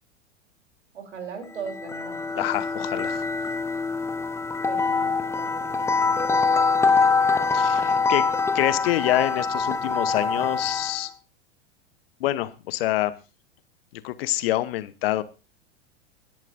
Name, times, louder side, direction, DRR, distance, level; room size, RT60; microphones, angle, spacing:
voice 1, 0.9-2.4 4.7-6.3, right 6 dB, 70° right, 5 dB, 3.4 m, -39 dB
sound 1, 1.6-11.1, left 4 dB, 10° left, 0.7 m, -24 dB
voice 2, 2.4-3.2 7.5-8.3 8.5-11.1 12.2-13.1 13.9-15.2, left 15 dB, 55° left, 15 dB, 1.0 m, -26 dB
21.0 x 10.5 x 2.6 m, 0.31 s
figure-of-eight pair, 90°, 35 cm